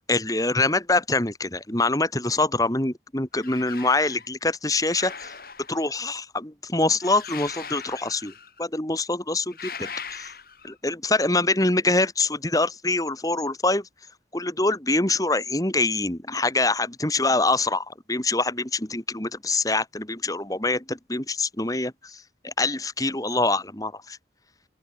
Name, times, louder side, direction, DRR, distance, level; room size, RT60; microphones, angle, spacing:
voice 1, 0.1-5.3 5.7-8.3 8.6-10.3 10.6-13.8 14.3-24.2, left 2 dB, 20° left, 2.2 m, -25 dB
sound 1, 3.3-4.3 4.9-5.9 7.0-8.6 9.5-10.7, left 6 dB, 55° left, 6.5 m, -39 dB
open air
head